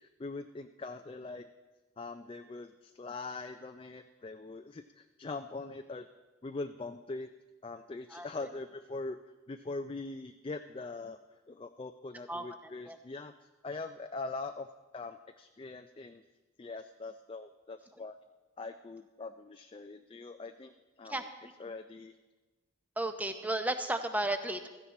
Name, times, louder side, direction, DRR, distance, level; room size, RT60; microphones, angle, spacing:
voice 1, 0.0-1.5 2.0-6.1 6.4-7.3 7.6-9.2 9.5-11.2 11.5-13.3 13.6-14.7 14.9-16.2 16.6-18.2 18.6-20.7 21.0-21.3 21.6-22.1, left 3 dB, 25° left, 7 dB, 0.4 m, -42 dB
voice 2, 23.0-24.7, right 1 dB, 10° right, 8 dB, 0.7 m, -33 dB
16.0 x 14.0 x 4.2 m, 1.2 s
head